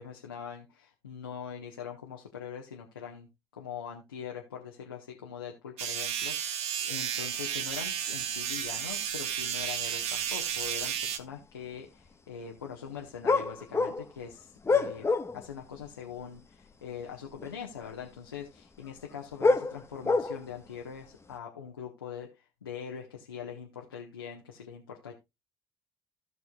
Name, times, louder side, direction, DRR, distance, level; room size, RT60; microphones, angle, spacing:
voice 1, 0.0-25.1, left 7 dB, 90° left, 0 dB, 1.2 m, -42 dB
sound 1, 5.8-11.2, right 9 dB, 65° right, 1.2 m, -33 dB
sound 2, 9.8-9.9 10.4-10.9 11.3-11.4 13.2-15.5 15.8-15.9 17.0-17.1 17.4-17.6 18.9-20.7 21.2-21.3, left 4 dB, 25° left, 1.2 m, -27 dB
16.0 x 6.2 x 2.3 m, 0.23 s
hypercardioid pair, 55°, 12 cm